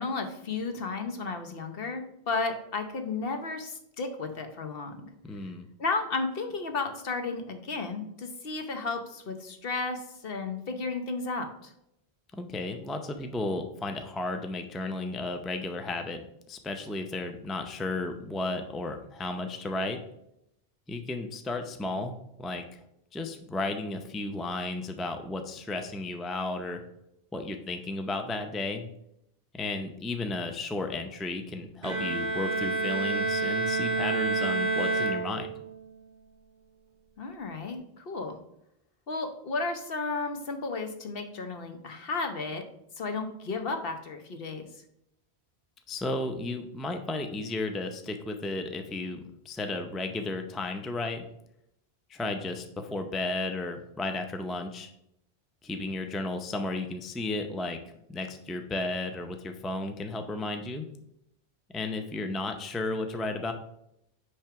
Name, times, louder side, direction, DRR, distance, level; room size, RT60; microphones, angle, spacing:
voice 1, 0.0-5.1 5.8-11.7 37.2-38.4 39.1-42.7 43.0-44.7, left 3 dB, 65° left, 6 dB, 1.1 m, -33 dB
voice 2, 5.2-5.7 12.3-16.2 16.5-20.0 20.9-22.1 22.4-22.8 23.1-26.8 27.3-28.9 29.5-35.5 45.9-51.3 52.1-54.9 55.6-60.9 61.7-63.5, left 2 dB, ahead, 6 dB, 0.4 m, -33 dB
Bowed string instrument, 31.8-35.8, right 3 dB, 45° right, 2.0 m, -28 dB
8.9 x 3.3 x 5.7 m, 0.80 s
omnidirectional pair, 1.1 m